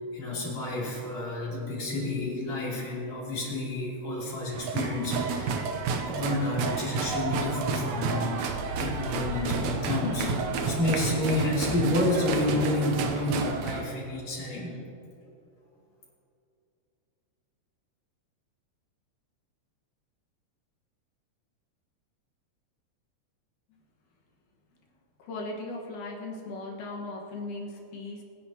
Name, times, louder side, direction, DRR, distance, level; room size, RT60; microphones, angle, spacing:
voice 1, 0.1-5.6 6.1-14.7, left 2 dB, 65° left, -5 dB, 4.4 m, -30 dB
sound 1, 4.5-13.8, right 5 dB, 75° right, 2.1 m, -30 dB
voice 2, 25.2-28.2, left 2 dB, 90° left, 0 dB, 3.0 m, -37 dB
26.0 x 9.9 x 2.9 m, 2.7 s
omnidirectional pair, 3.4 m